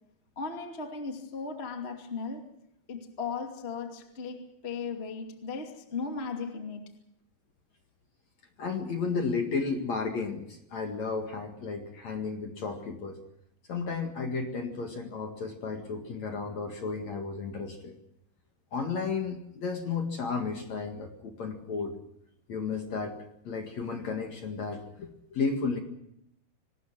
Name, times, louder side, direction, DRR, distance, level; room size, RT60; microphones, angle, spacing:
voice 1, 0.4-2.4 2.9-6.8, left 5 dB, 20° left, 1.8 m, -36 dB
voice 2, 8.6-13.2 13.7-17.9 18.7-22.0 22.5-23.1 23.4-25.8, left 4 dB, 50° left, 2.6 m, -33 dB
25.5 x 19.5 x 6.1 m
omnidirectional pair, 4.9 m